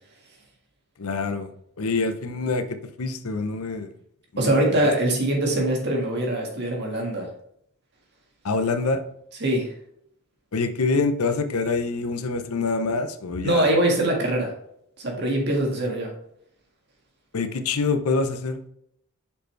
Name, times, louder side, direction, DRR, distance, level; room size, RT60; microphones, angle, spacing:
voice 1, 1.0-1.5 1.8-3.9 4.3-4.9 8.4-9.0 10.5-13.7 17.3-18.6, left 3 dB, 80° left, 9 dB, 0.7 m, -26 dB
voice 2, 4.4-7.3 9.4-9.7 13.4-14.5 15.0-16.1, right 1 dB, 50° right, 1 dB, 1.7 m, -23 dB
6.7 x 5.2 x 3.2 m, 0.73 s
head